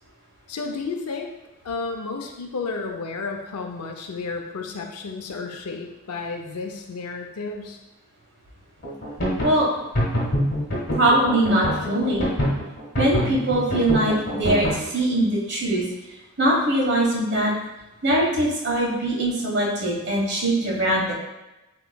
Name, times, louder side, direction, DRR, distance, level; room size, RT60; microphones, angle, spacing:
voice 1, 0.5-1.3 1.6-7.8, left 4 dB, 90° left, 3 dB, 0.6 m, -32 dB
sound 1, 8.8-14.8, equal, 45° left, 1.5 m, -25 dB
voice 2, 10.9-12.2 13.0-15.8 16.4-17.5 18.0-21.1, right 1 dB, 50° right, -4 dB, 1.3 m, -22 dB
7.7 x 3.0 x 2.3 m, 1.0 s
head